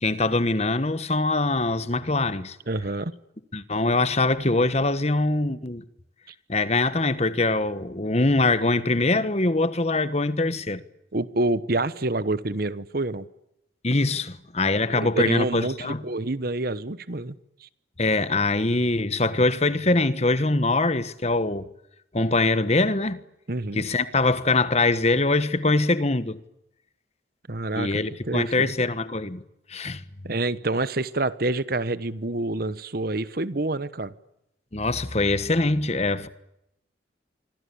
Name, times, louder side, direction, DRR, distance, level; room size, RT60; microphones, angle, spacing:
voice 1, 0.0-2.6 3.5-5.8 6.5-10.8 13.8-16.0 18.0-21.7 22.1-23.2 23.7-26.4 27.7-29.4 29.7-30.0 34.7-36.3, left 2 dB, 35° left, 1.3 m, -23 dB
voice 2, 2.7-3.1 11.1-13.3 14.9-17.3 17.6-17.7 23.5-23.8 27.5-28.7 30.2-34.1, right 2 dB, 50° right, 1.1 m, -27 dB
26.5 x 24.0 x 8.6 m
head